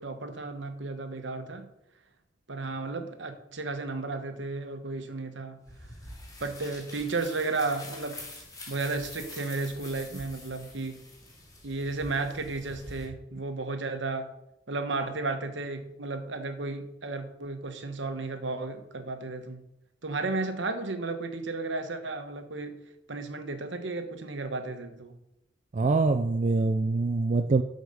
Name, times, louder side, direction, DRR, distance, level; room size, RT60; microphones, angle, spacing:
voice 1, 0.0-1.7 2.5-5.6 6.4-8.2 8.7-11.0 11.6-14.3 14.7-19.6 20.0-22.8 23.1-25.1, right 3 dB, 75° right, 7 dB, 1.1 m, -33 dB
sound 1, 5.7-13.1, left 2 dB, 20° left, 2.4 m, -45 dB
voice 2, 25.7-27.6, right 3 dB, 40° right, 8 dB, 0.4 m, -24 dB
8.0 x 6.4 x 5.5 m, 0.84 s
head